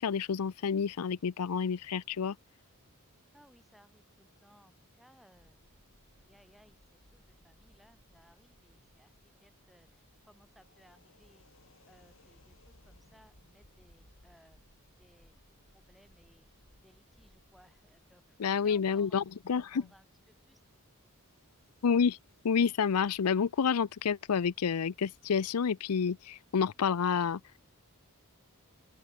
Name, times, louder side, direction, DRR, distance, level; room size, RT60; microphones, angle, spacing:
voice 1, 0.0-2.3 18.4-19.8 21.8-22.2 22.4-27.4, left 6 dB, 80° left, 0.5 m, -29 dB
voice 2, 3.3-5.6 6.2-11.5 11.9-14.6 15.0-15.3 15.7-16.5 16.8-20.6, equal, ahead, 5.8 m, -64 dB
sound 1, 5.3-25.2, left 1 dB, 60° left, 5.5 m, -65 dB
open air
head